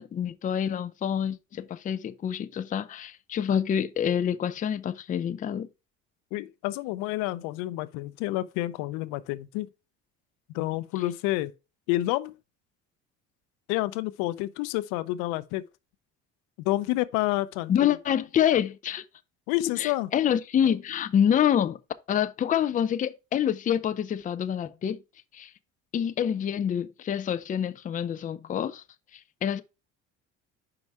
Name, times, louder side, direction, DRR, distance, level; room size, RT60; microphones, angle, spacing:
voice 1, 0.0-5.7 17.7-19.0 19.8-21.8 22.1-25.0 25.3-25.5 25.9-28.8 29.4-29.6, left 9 dB, 25° left, 0.4 m, -27 dB
voice 2, 6.3-9.7 10.5-11.5 11.9-12.4 13.7-15.7 16.6-18.0 19.5-20.1, left 17 dB, 90° left, 0.6 m, -29 dB
5.3 x 4.8 x 4.6 m
cardioid pair, 120°, 31 cm